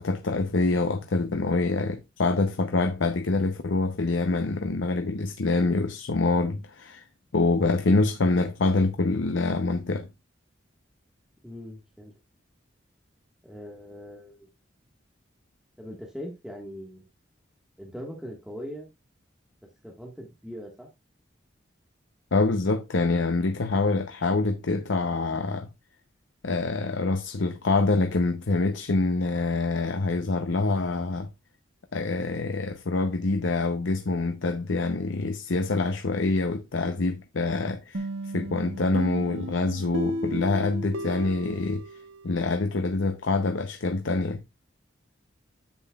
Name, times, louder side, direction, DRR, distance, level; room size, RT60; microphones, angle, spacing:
voice 1, 0.0-7.0 7.3-10.1 22.3-25.7 26.4-31.3 31.9-38.1 38.3-41.8 42.2-44.4, left 3 dB, 80° left, 0.7 m, -25 dB
voice 2, 11.4-12.1 13.4-14.5 15.8-17.0 17.8-18.9 19.8-20.9, equal, 5° right, 1.5 m, -40 dB
sound 1, 37.9-42.6, right 1 dB, 85° right, 1.0 m, -34 dB
10.0 x 7.7 x 2.3 m
head